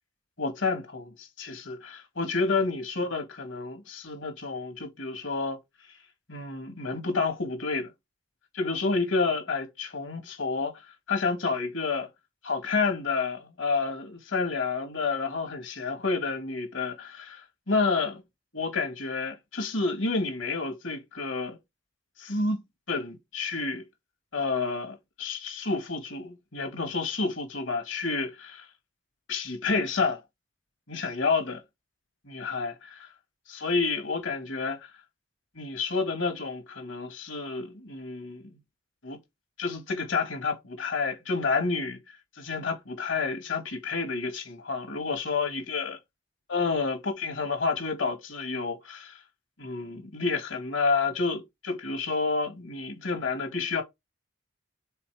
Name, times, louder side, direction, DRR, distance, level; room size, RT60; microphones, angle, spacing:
voice 1, 0.4-5.6 6.3-7.9 8.5-12.1 12.4-18.2 18.5-21.6 22.2-23.8 24.3-28.7 29.3-30.2 30.9-31.6 32.3-33.1 33.5-34.9 35.6-38.4 39.0-39.2 39.6-42.0 42.4-46.0 46.5-49.2 49.6-53.8, left 4 dB, 70° left, 2.0 m, -30 dB
5.7 x 4.2 x 4.9 m
head